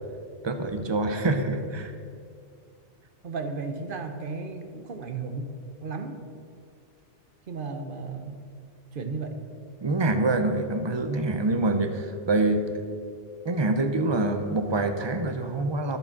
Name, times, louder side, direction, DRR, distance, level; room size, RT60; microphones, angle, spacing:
voice 1, 0.4-1.9 9.8-13.0 13.4-16.0, right 2 dB, 30° right, 7 dB, 0.7 m, -26 dB
voice 2, 3.2-5.5 5.8-6.2 7.5-8.4 8.9-9.3, right 4 dB, 50° right, 6 dB, 1.0 m, -34 dB
11.0 x 7.0 x 5.8 m, 2.3 s
omnidirectional pair, 1.2 m